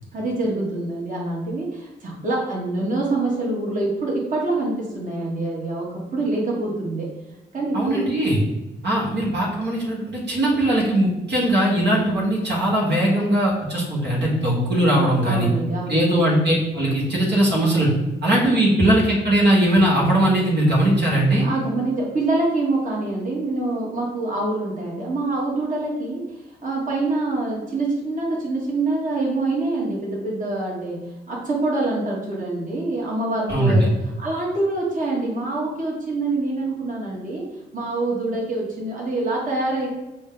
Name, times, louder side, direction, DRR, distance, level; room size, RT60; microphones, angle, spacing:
voice 1, 0.1-7.1 7.5-8.2 15.2-16.2 21.4-26.4 26.6-37.4 37.7-39.9, right 2 dB, 40° right, -4 dB, 1.4 m, -25 dB
voice 2, 7.7-8.4 8.8-15.5 15.9-17.9 18.2-21.5 33.5-33.9, right 1 dB, 60° right, -5 dB, 1.5 m, -19 dB
5.3 x 2.2 x 3.8 m, 1.0 s
supercardioid pair, 55°, 20 cm